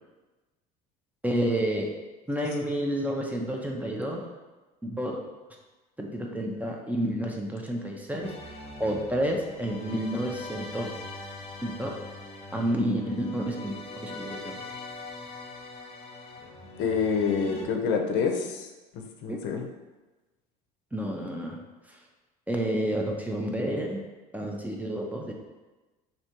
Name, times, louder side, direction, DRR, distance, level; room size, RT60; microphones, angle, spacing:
voice 1, 1.2-1.9 2.3-4.3 4.8-5.1 6.0-8.3 8.8-10.9 11.6-11.9 12.5-14.6 19.3-19.4 20.9-21.6 21.9-22.0 22.5-24.0 24.3-25.3, equal, 10° right, 0 dB, 0.5 m, -30 dB
sound 1, 8.2-17.6, left 2 dB, 30° left, 0.8 m, -42 dB
voice 2, 16.8-18.7 18.9-19.7, left 5 dB, 65° left, 3 dB, 0.5 m, -27 dB
3.2 x 2.7 x 2.8 m, 1.2 s
supercardioid pair, 90°, 19 cm